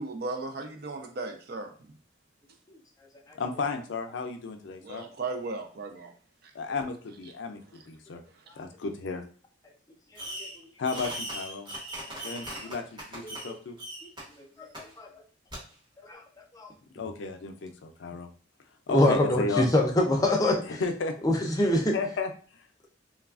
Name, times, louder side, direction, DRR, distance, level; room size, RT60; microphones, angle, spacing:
voice 1, 0.0-1.7 4.8-6.1, right 3 dB, 55° right, 0.5 m, -36 dB
voice 2, 3.4-5.1 6.5-8.2 8.6-9.2 10.8-11.7 12.1-13.8 16.9-18.3 18.9-19.7 20.7-21.1 21.9-22.3, left 4 dB, 75° left, 0.4 m, -33 dB
Fireworks, 10.2-10.6 10.8-13.5 13.8-14.2 14.7-14.8 15.5-15.6, right 1 dB, 25° right, 1.0 m, -38 dB
voice 3, 14.4-15.1 16.0-16.2 16.5-16.7 18.9-20.8 21.2-21.9, left 1 dB, 20° left, 0.5 m, -25 dB
3.1 x 2.3 x 2.3 m
head